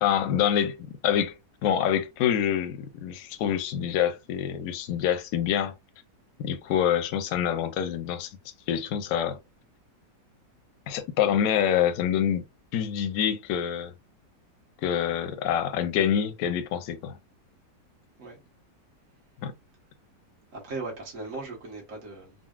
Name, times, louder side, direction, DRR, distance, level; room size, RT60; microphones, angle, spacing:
voice 1, 0.0-1.4 1.6-5.7 6.4-8.3 8.7-9.4 10.9-12.4 12.7-13.9 14.8-17.2 19.4-19.5, left 9 dB, 70° left, 0.9 m, -26 dB
voice 2, 20.5-22.3, right 3 dB, 50° right, 1.5 m, -38 dB
3.9 x 2.0 x 2.3 m
omnidirectional pair, 1.9 m